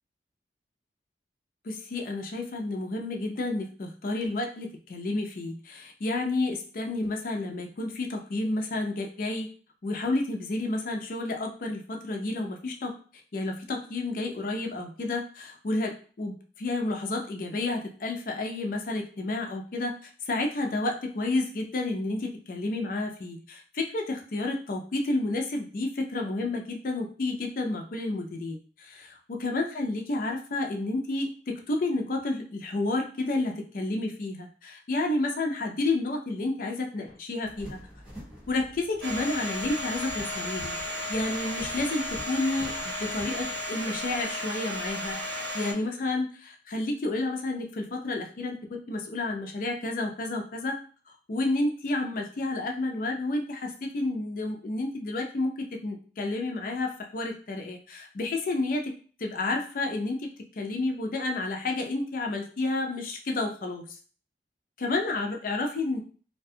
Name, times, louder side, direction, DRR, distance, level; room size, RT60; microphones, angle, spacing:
voice 1, 1.6-9.5 9.8-12.9 13.3-37.8 38.5-40.8 41.1-48.6 48.9-50.8 51.3-58.9 59.2-60.3 60.6-63.9 64.8-66.0, left 2 dB, 50° left, 2 dB, 0.4 m, -30 dB
sound 1, 37.4-43.6, equal, 5° right, 1.2 m, -47 dB
Domestic sounds home sounds, 39.0-45.7, equal, 90° right, 0.8 m, -34 dB
2.4 x 2.2 x 2.6 m, 0.41 s
head